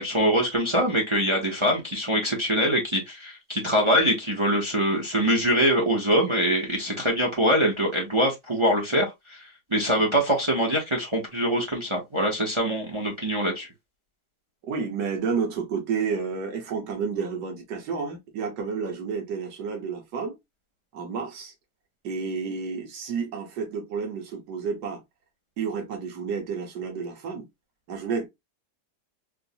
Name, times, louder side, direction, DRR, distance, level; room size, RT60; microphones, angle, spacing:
voice 1, 0.0-13.7, equal, 35° right, 0.5 m, -24 dB
voice 2, 14.7-20.3 20.9-21.5 22.0-25.0 25.6-27.5 27.9-28.3, right 5 dB, 70° right, 1.6 m, -30 dB
4.4 x 2.1 x 2.7 m
omnidirectional pair, 1.8 m